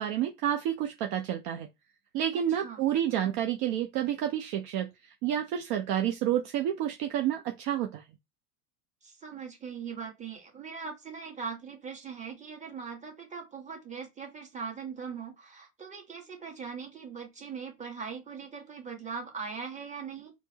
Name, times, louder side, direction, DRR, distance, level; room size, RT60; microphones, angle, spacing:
voice 1, 0.0-1.7 2.1-8.0, right 10 dB, 45° right, 0.6 m, -29 dB
voice 2, 2.3-2.8 9.0-20.3, right 6 dB, 15° right, 1.3 m, -40 dB
4.3 x 2.0 x 2.8 m
hypercardioid pair, 90°, 45 cm